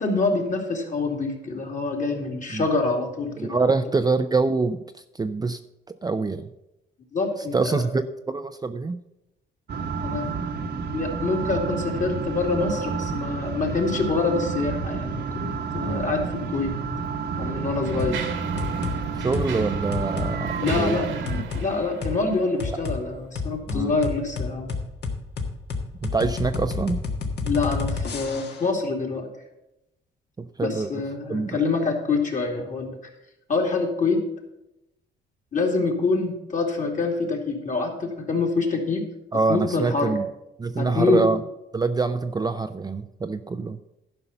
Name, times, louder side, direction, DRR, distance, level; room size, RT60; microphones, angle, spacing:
voice 1, 0.0-3.7 7.1-7.8 10.0-10.3 10.9-16.7 17.4-18.2 20.6-21.1 21.5-24.7 27.4-29.3 30.6-32.9 33.5-34.2 35.5-39.0 39.5-40.2 40.8-41.3, left 3 dB, 40° left, 2 dB, 2.5 m, -26 dB
voice 2, 3.4-5.6 5.9-6.5 7.5-9.0 15.8-16.1 18.1-18.2 19.2-21.0 23.7-23.9 26.0-27.0 30.4-31.0 31.3-31.7 39.3-40.3 40.6-41.4 41.7-43.8, right 3 dB, 20° right, 9 dB, 0.5 m, -25 dB
sound 1, 9.7-21.4, right 5 dB, 60° right, 1.1 m, -30 dB
Mechanisms, 16.5-16.6 17.3-23.1, right 6 dB, 85° right, 1.7 m, -39 dB
sound 2, 18.0-18.2 18.6-19.0 19.3-19.5 19.9-20.3 20.7-20.8 21.3-21.7 22.0-22.2 22.6-23.0 23.4-28.7, left 4 dB, 60° left, 1.6 m, -29 dB
11.0 x 5.5 x 6.8 m, 0.90 s
cardioid pair, 90°, 20 cm